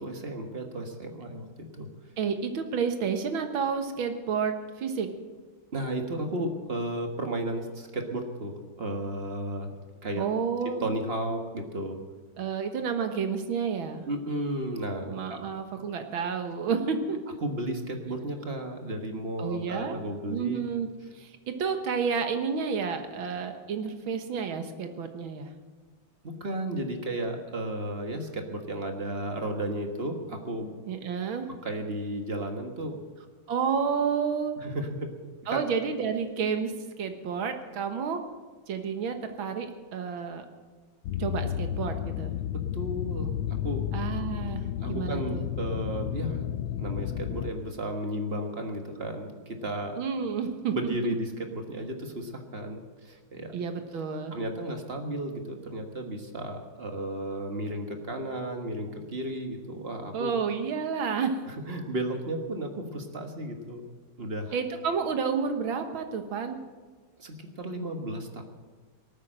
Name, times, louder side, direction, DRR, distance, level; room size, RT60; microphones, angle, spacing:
voice 1, 0.0-1.9 5.7-9.7 10.0-10.3 10.8-12.0 14.1-15.4 17.4-20.6 26.2-30.8 31.6-33.0 34.6-35.1 35.4-35.6 42.5-43.9 44.8-46.5 46.8-50.0 50.7-53.5 54.3-60.3 61.5-63.8 64.2-64.5 67.2-68.4, right 1 dB, 35° right, 5 dB, 1.5 m, -34 dB
voice 2, 2.2-5.1 10.2-10.9 12.4-14.0 15.1-17.4 19.4-20.0 20.3-20.9 21.2-25.5 30.9-31.5 33.5-34.6 35.5-38.2 38.7-40.5 41.2-42.3 43.9-44.6 44.9-45.5 50.0-51.1 53.5-54.3 60.1-61.4 64.5-66.6, right 6 dB, 90° right, 7 dB, 2.1 m, -30 dB
sound 1, 41.0-47.5, left 11 dB, 90° left, 1.4 m, -32 dB
18.5 x 9.1 x 7.6 m, 1.4 s
omnidirectional pair, 2.2 m